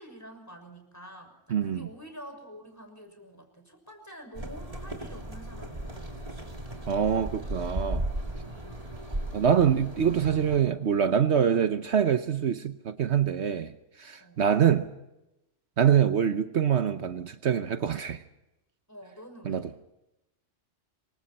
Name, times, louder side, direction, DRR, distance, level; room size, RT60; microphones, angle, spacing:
voice 1, 0.0-6.6 7.3-7.5 8.5-8.8 14.2-14.4 18.9-19.7, equal, 15° left, 6.3 m, -48 dB
voice 2, 1.5-1.9 6.9-8.0 9.3-13.7 14.0-14.9 15.8-18.2 19.4-19.8, right 8 dB, 70° right, 1.2 m, -25 dB
sound 1, 4.3-10.6, right 1 dB, 30° right, 3.1 m, -36 dB
27.5 x 24.5 x 4.3 m
omnidirectional pair, 1.2 m